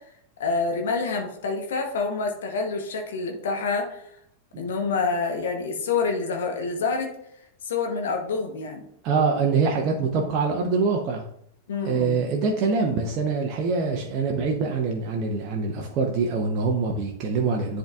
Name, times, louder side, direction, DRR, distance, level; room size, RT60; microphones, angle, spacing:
voice 1, 0.4-4.0 4.6-7.1 7.7-8.8 11.7-12.2, left 4 dB, 60° left, 3 dB, 0.9 m, -27 dB
voice 2, 9.0-11.2 11.8-17.8, right 4 dB, 35° right, 1 dB, 0.8 m, -24 dB
10.5 x 3.8 x 2.4 m, 0.72 s
figure-of-eight pair, 90°, 0 cm